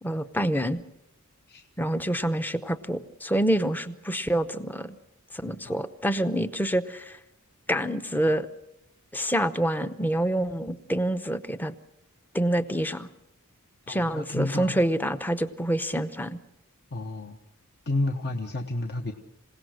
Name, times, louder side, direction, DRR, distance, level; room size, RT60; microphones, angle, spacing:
voice 1, 0.0-0.8 1.8-5.0 5.3-7.2 7.7-8.5 9.1-11.7 12.3-13.1 13.9-16.4, right 1 dB, 10° left, 11 dB, 0.8 m, -27 dB
voice 2, 13.9-14.8 16.9-17.4 17.9-19.1, left 2 dB, 45° left, 4 dB, 1.1 m, -30 dB
27.0 x 17.0 x 6.5 m, 0.85 s
head